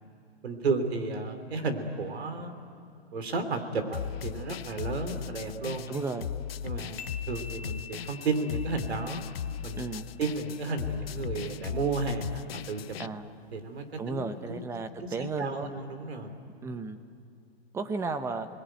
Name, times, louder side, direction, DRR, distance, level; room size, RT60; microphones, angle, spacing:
voice 1, 0.4-2.5 3.1-6.1 6.6-9.2 9.6-9.8 10.2-13.1 13.5-14.6 15.0-16.4, right 3 dB, 80° right, 7 dB, 3.4 m, -33 dB
sound 1, 3.9-13.1, left 9 dB, 65° left, 0.7 m, -37 dB
voice 2, 5.9-6.3 9.8-10.1 13.0-13.3 14.0-15.7 16.6-17.0 17.7-18.5, right 3 dB, 10° right, 9 dB, 0.9 m, -34 dB
sound 2, 7.0-10.5, left 5 dB, 25° left, 1.1 m, -47 dB
29.5 x 21.0 x 9.1 m, 2.5 s
hypercardioid pair, 145°, 31 cm